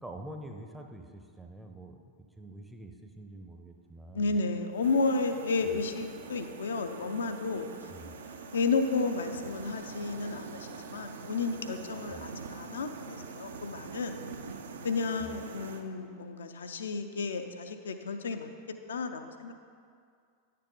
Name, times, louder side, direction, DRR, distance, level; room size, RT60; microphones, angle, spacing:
voice 1, 0.0-2.0 2.4-4.3 5.6-5.8 7.9-8.1 12.1-12.3 15.2-15.4, right 1 dB, 5° right, 4 dB, 0.6 m, -46 dB
voice 2, 4.1-7.7 8.5-14.2 14.8-18.5 18.9-19.5, left 4 dB, 65° left, 7 dB, 0.6 m, -32 dB
sound 1, 4.8-15.8, right 4 dB, 65° right, 0.6 m, -44 dB
10.0 x 6.7 x 3.8 m, 2.2 s
figure-of-eight pair, 90°, 0 cm